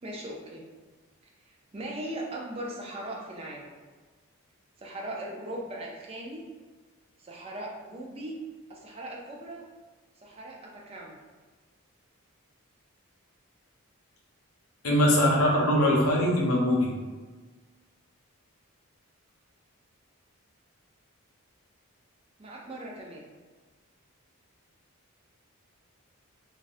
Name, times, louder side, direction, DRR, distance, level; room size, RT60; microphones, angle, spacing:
voice 1, 0.0-0.7 1.4-3.7 4.8-6.4 7.2-8.4 8.7-9.6 10.2-11.2 22.4-23.3, right 1 dB, 25° right, -2 dB, 0.4 m, -39 dB
voice 2, 14.8-16.9, equal, 80° left, -2 dB, 0.6 m, -22 dB
3.4 x 2.3 x 2.5 m, 1.4 s
head